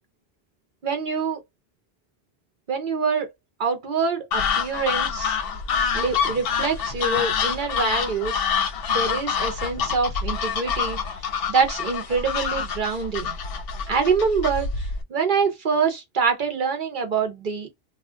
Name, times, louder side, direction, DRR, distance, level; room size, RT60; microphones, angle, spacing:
voice 1, 0.8-1.4 2.7-3.3 3.6-5.4 5.9-8.5 8.9-11.0 11.5-13.4 13.9-17.7, right 5 dB, 55° right, 0.8 m, -25 dB
sound 1, 4.3-15.0, left 6 dB, 65° left, 0.7 m, -26 dB
2.3 x 2.1 x 3.3 m
omnidirectional pair, 1.1 m